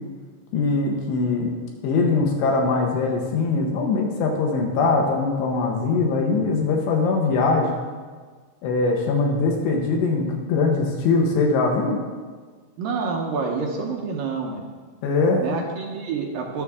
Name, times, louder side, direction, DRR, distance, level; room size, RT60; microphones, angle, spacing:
voice 1, 0.5-1.5 1.8-7.7 8.6-12.0 15.0-15.4, left 3 dB, 75° left, 0 dB, 3.4 m, -21 dB
voice 2, 12.8-14.6 15.4-16.6, right 4 dB, 70° right, 0 dB, 2.3 m, -28 dB
21.5 x 7.2 x 3.6 m, 1.5 s
omnidirectional pair, 5.0 m